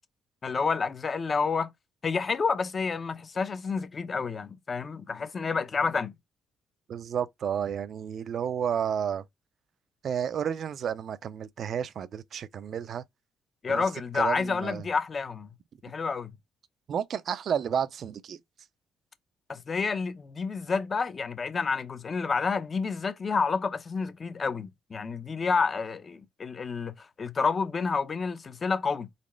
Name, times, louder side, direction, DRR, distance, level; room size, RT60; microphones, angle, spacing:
voice 1, 0.4-1.7 2.0-6.1 13.6-15.5 15.8-16.3 19.5-29.1, left 5 dB, 40° left, 0.7 m, -29 dB
voice 2, 6.9-9.2 10.0-13.0 13.7-13.8 14.1-14.8 16.9-18.4, right 8 dB, 60° right, 0.5 m, -31 dB
4.1 x 3.2 x 3.1 m
cardioid pair, 90°, 0 cm